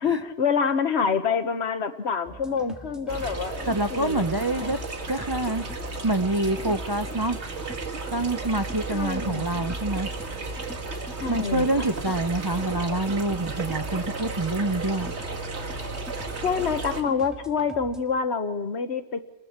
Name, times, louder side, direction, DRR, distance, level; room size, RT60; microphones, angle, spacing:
voice 1, 0.0-4.3 4.6-4.8 8.9-9.7 11.2-11.9 16.4-19.2, left 6 dB, 75° left, 9 dB, 1.5 m, -27 dB
sound 1, 2.3-18.0, right 1 dB, ahead, 2.2 m, -44 dB
sound 2, 3.1-17.0, right 3 dB, 90° right, 2.1 m, -34 dB
voice 2, 3.7-4.8 5.1-7.4 8.1-10.1 11.3-15.1, right 2 dB, 25° right, 9 dB, 0.6 m, -26 dB
29.5 x 21.0 x 4.4 m, 1.1 s
omnidirectional pair, 1.1 m